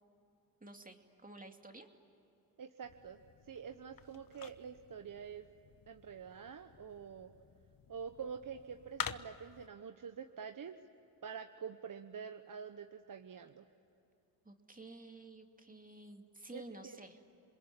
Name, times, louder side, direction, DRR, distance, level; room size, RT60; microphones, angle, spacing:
voice 1, 0.6-1.9 14.4-17.2, right 2 dB, 20° right, 4 dB, 2.6 m, -52 dB
voice 2, 2.6-3.2 3.5-5.5 5.9-7.3 7.9-10.8 11.2-13.6 16.5-17.0, right 7 dB, 50° right, 7 dB, 1.2 m, -47 dB
sound 1, 2.8-9.7, left 8 dB, 50° left, 1.1 m, -49 dB
27.0 x 21.5 x 9.9 m, 2.8 s
supercardioid pair, 55°, 42 cm